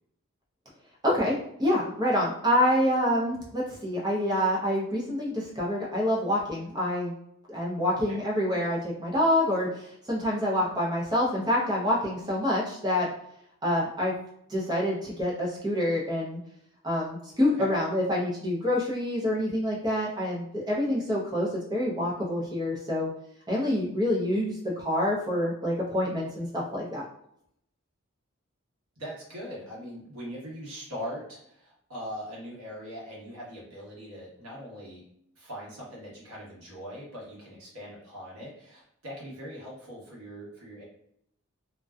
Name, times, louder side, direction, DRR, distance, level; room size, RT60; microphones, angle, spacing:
voice 1, 1.0-7.1 7.5-13.1 13.6-14.1 14.5-16.4 16.8-23.1 23.5-27.0, left 1 dB, 20° right, -4 dB, 0.5 m, -27 dB
voice 2, 29.0-35.0 35.3-40.8, equal, 80° right, -5 dB, 1.1 m, -41 dB
2.5 x 2.1 x 2.3 m, 0.72 s
head